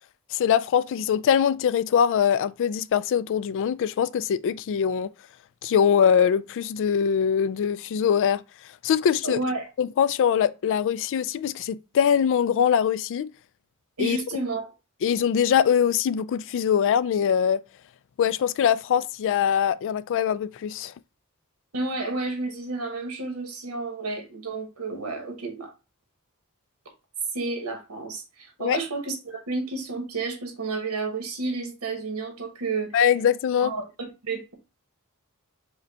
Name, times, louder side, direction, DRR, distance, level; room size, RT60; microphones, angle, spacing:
voice 1, 0.3-5.1 5.6-8.4 8.8-9.4 9.8-13.3 14.0-14.2 15.0-17.6 18.2-20.9 28.6-28.8 32.9-33.7, left 8 dB, 60° left, 0.3 m, -22 dB
voice 2, 9.2-9.7 14.0-14.7 21.7-25.7 27.3-33.0 33.6-33.8 34.2-34.5, right 3 dB, 85° right, 1.2 m, -31 dB
5.0 x 2.3 x 4.1 m
head